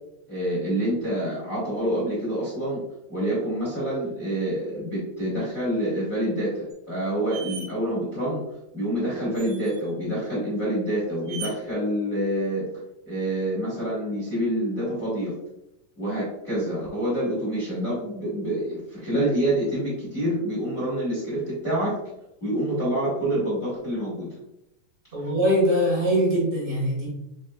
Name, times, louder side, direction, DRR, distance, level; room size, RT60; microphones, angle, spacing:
voice 1, 0.3-2.8 3.1-8.4 8.7-12.7 13.0-15.3 16.0-22.0 22.4-24.4, right 1 dB, 35° left, -7 dB, 1.5 m, -27 dB
sound 1, 6.7-6.8 7.3-7.7 9.4-9.9 11.3-11.5, right 6 dB, 85° right, 2.2 m, -38 dB
voice 2, 25.1-27.1, equal, 30° right, -5 dB, 1.1 m, -22 dB
5.4 x 4.1 x 2.3 m, 0.86 s
omnidirectional pair, 3.8 m